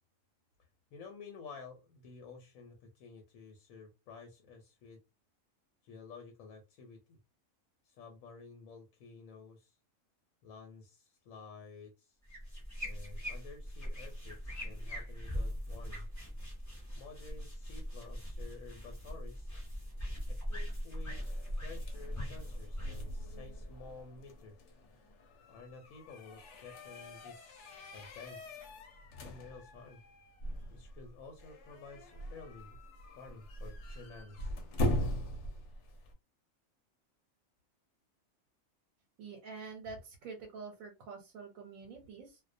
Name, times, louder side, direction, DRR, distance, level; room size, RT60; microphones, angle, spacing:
voice 1, 0.9-5.0 5.8-7.2 7.8-9.8 10.4-12.1 12.8-16.1 17.0-19.5 20.3-24.6 25.5-27.6 27.9-28.6 29.2-30.0 30.7-32.8 33.2-34.6, left 4 dB, 85° left, 3 dB, 1.0 m, -52 dB
sound 1, 12.2-24.2, equal, 15° left, 0.8 m, -41 dB
sound 2, 21.1-36.1, left 1 dB, 65° left, 0.9 m, -41 dB
voice 2, 39.2-42.4, right 4 dB, 85° right, 2 dB, 1.1 m, -47 dB
2.3 x 2.1 x 2.5 m, 0.26 s
omnidirectional pair, 1.4 m